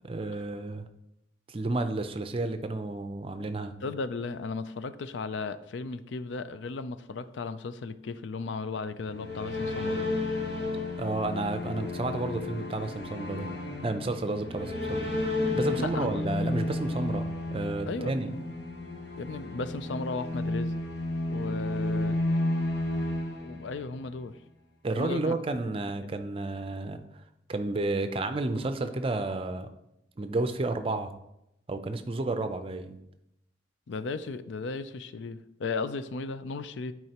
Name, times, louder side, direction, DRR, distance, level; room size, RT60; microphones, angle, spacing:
voice 1, 0.0-0.9 1.5-3.7 11.0-13.5 13.8-15.1 15.5-18.3 24.8-27.0 27.5-29.7 30.2-31.1 31.7-33.0, right 2 dB, 30° right, 9 dB, 0.5 m, -31 dB
voice 2, 3.8-10.1 14.3-14.4 15.8-16.2 17.9-18.4 19.2-20.8 21.3-22.2 23.4-24.3 25.0-25.4 33.9-36.9, left 4 dB, 85° left, 12 dB, 0.4 m, -35 dB
sound 1, 8.9-24.1, left 2 dB, 65° left, 1.1 m, -32 dB
11.0 x 4.7 x 2.9 m, 0.84 s
head